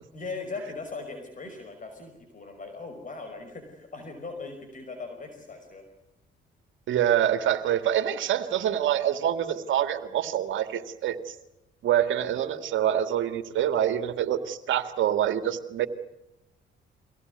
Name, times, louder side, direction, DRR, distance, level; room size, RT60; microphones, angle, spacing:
voice 1, 0.1-5.8, left 3 dB, 40° left, 5 dB, 5.5 m, -39 dB
voice 2, 6.9-11.3 11.8-15.9, right 10 dB, 75° right, 10 dB, 2.2 m, -26 dB
24.5 x 18.0 x 9.6 m, 0.91 s
cardioid pair, 90°, 20 cm